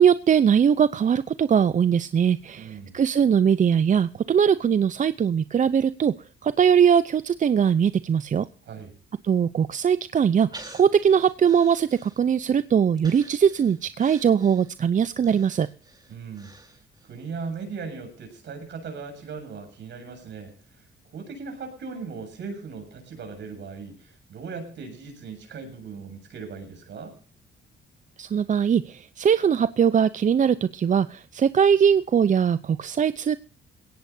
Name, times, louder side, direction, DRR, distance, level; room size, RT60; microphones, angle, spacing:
voice 1, 0.0-6.1 6.4-8.4 9.2-15.7 28.2-33.4, right 7 dB, 40° right, 14 dB, 0.6 m, -21 dB
voice 2, 2.6-3.0 8.7-8.9 16.1-16.5 17.1-20.5 21.1-27.1, right 5 dB, 65° right, 4 dB, 7.5 m, -38 dB
Breathing, 10.5-12.5 13.0-17.2 17.5-17.6, right 2 dB, 20° right, 4.1 m, -48 dB
21.0 x 17.5 x 2.7 m, 0.42 s
cardioid pair, 90°, 20 cm